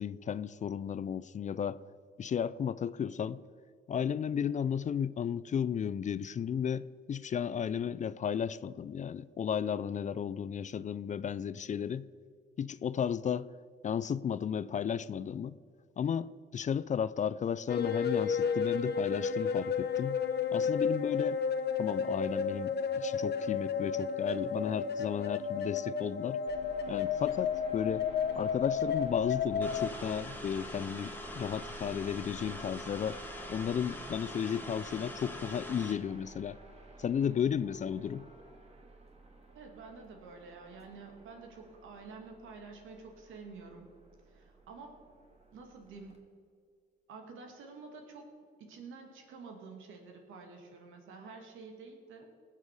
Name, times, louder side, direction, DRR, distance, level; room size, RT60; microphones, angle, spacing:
voice 1, 0.0-1.8 2.2-3.4 3.9-12.1 12.6-13.5 13.8-15.5 16.0-20.2 20.5-21.4 21.8-26.4 26.9-28.1 28.4-33.2 33.5-36.6 37.0-38.3, left 8 dB, 40° left, 0.4 m, -34 dB
sound 1, 17.7-29.9, left 6 dB, 55° left, 1.0 m, -32 dB
sound 2, 26.5-46.2, right 1 dB, 30° right, 2.3 m, -53 dB
sound 3, 29.6-35.9, equal, 10° left, 1.7 m, -43 dB
voice 2, 39.5-43.9 44.3-45.0 45.5-46.3 47.1-48.3 48.6-52.3, right 4 dB, 85° right, 2.3 m, -49 dB
19.0 x 7.6 x 4.8 m
cardioid pair, 90°, 20 cm